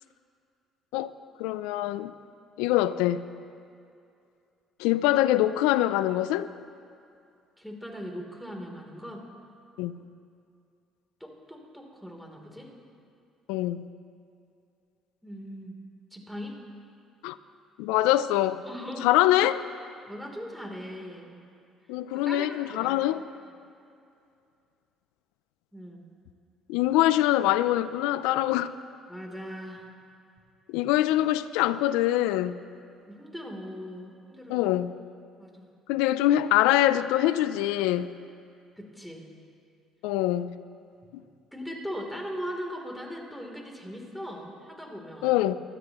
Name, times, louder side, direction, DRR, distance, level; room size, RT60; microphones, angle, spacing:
voice 1, 1.4-2.1 2.6-3.2 4.8-6.5 9.8-10.0 13.5-13.9 17.2-17.4 17.8-18.6 19.0-19.6 21.9-23.2 26.7-28.8 30.7-32.6 34.5-34.9 35.9-38.1 40.0-40.6 45.2-45.6, left 14 dB, 85° left, 0.4 m, -24 dB
voice 2, 7.6-9.3 11.2-12.7 15.2-15.8 16.1-16.6 18.6-19.1 20.1-21.4 22.1-23.2 25.7-26.0 29.1-29.9 33.1-34.7 35.4-35.7 38.8-39.3 41.0-41.2 41.5-45.3, equal, ahead, 3.3 m, -39 dB
25.0 x 12.5 x 3.1 m
supercardioid pair, 65°, 0 cm